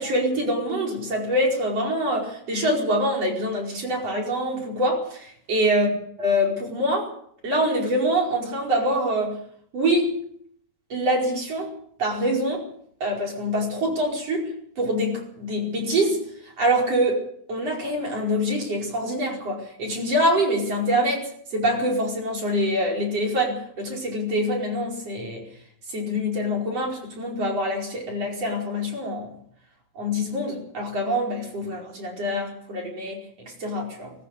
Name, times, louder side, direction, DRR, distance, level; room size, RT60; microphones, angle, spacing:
voice 1, 0.0-5.9 6.2-7.1 7.4-9.4 9.7-10.2 10.9-12.7 13.0-14.5 14.8-16.2 16.6-17.2 17.5-25.5 25.9-29.3 30.0-34.1, equal, 55° right, -1 dB, 6.0 m, -25 dB
20.5 x 19.0 x 6.7 m, 0.65 s
omnidirectional pair, 3.3 m